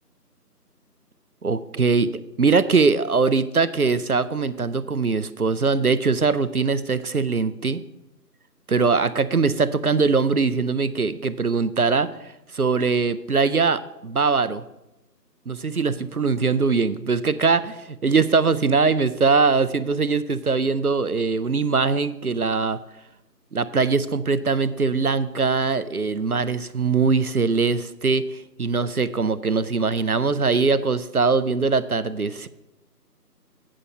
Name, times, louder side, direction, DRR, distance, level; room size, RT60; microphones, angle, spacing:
voice 1, 1.4-2.1 2.4-7.8 8.7-12.1 12.5-14.6 15.5-22.8 23.5-32.5, right 4 dB, 65° right, 14 dB, 0.6 m, -22 dB
8.7 x 5.7 x 6.4 m, 0.93 s
figure-of-eight pair, 170°, 49 cm